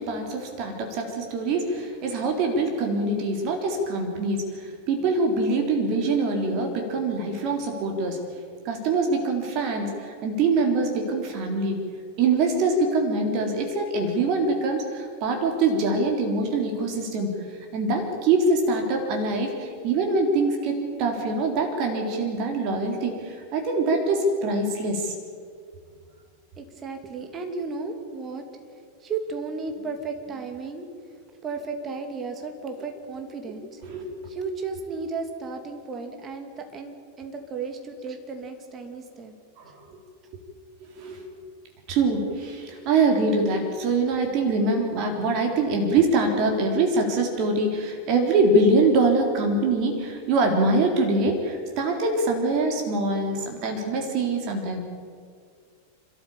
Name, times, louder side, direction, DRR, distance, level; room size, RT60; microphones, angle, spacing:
voice 1, 0.0-8.2 8.6-11.8 12.2-17.4 17.7-25.1 33.9-34.3 39.6-39.7 40.8-41.3 41.9-54.8, right 3 dB, 40° right, 2 dB, 3.8 m, -24 dB
voice 2, 26.6-28.5 29.0-30.9 31.4-33.8 34.3-39.3 39.9-40.0, right 4 dB, 25° right, 5 dB, 2.9 m, -34 dB
28.5 x 13.5 x 8.7 m, 2.1 s
figure-of-eight pair, 90°, 0 cm